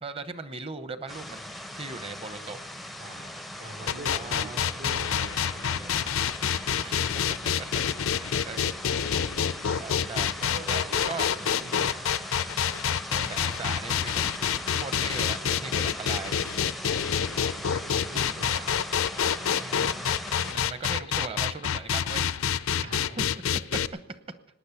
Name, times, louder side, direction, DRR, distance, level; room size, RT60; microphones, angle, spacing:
voice 1, 0.0-2.6 4.1-4.9 6.8-7.8 8.1-8.8 9.8-10.3 10.7-11.3 13.1-14.2 14.8-16.4 19.6-22.9 23.2-23.3 23.7-24.2, right 3 dB, 30° right, 11 dB, 0.9 m, -39 dB
sound 1, 1.1-20.5, left 1 dB, ahead, 0.5 m, -39 dB
voice 2, 3.0-6.1 7.8-8.1 10.4-12.1 16.8-18.7 22.8-23.2, right 2 dB, 80° right, 1 dB, 4.2 m, -44 dB
sound 2, 3.9-23.9, left 8 dB, 90° left, 0.5 m, -27 dB
18.5 x 10.5 x 7.1 m, 0.92 s
head